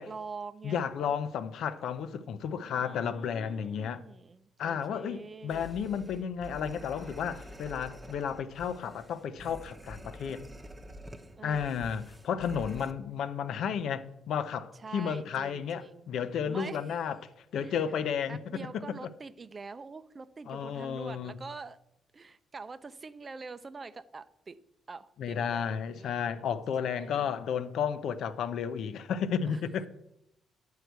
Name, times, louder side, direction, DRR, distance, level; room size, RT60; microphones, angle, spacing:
voice 1, 0.0-1.1 2.5-5.8 11.3-11.7 14.8-16.1 16.4-16.8 17.6-17.8 18.3-21.8 22.1-24.6 24.9-25.7 26.0-26.4 26.8-27.4 29.5-29.6, right 4 dB, 35° right, 0.6 m, -45 dB
voice 2, 0.6-4.0 4.6-10.4 11.4-17.2 17.5-19.1 20.5-21.3 25.2-29.9, left 7 dB, 75° left, 0.7 m, -33 dB
sound 1, 5.5-12.9, equal, 15° right, 1.0 m, -48 dB
10.5 x 4.8 x 8.0 m
cardioid pair, 90°, 0 cm